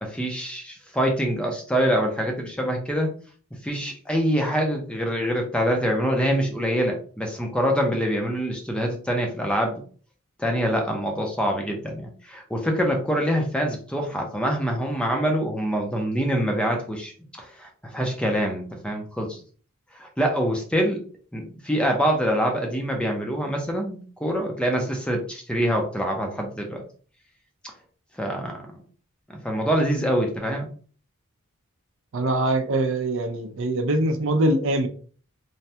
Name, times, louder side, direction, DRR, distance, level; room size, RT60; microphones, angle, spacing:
voice 1, 0.0-3.1 3.6-9.8 10.4-17.1 17.4-19.4 20.0-21.0 21.3-26.8 28.2-28.6 29.4-30.7, equal, 5° left, 2 dB, 0.5 m, -25 dB
voice 2, 32.1-34.9, right 1 dB, 60° right, 6 dB, 0.5 m, -23 dB
3.2 x 2.2 x 2.7 m, 0.42 s
head